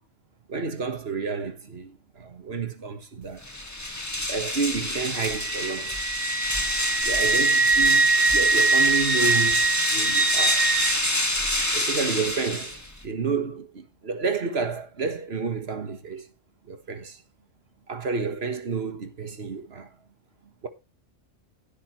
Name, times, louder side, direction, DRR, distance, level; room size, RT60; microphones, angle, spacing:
voice 1, 0.5-3.4 4.3-6.0 7.0-10.7 11.7-16.3 16.7-17.2 17.9-19.9 20.6-20.7, right 5 dB, 55° right, 1.7 m, -30 dB
sound 1, 3.4-13.0, left 1 dB, 15° left, 1.7 m, -27 dB
Wind instrument woodwind instrument, 5.2-10.9, right 4 dB, 40° right, 1.4 m, -23 dB
14.5 x 8.4 x 3.2 m
omnidirectional pair, 1.3 m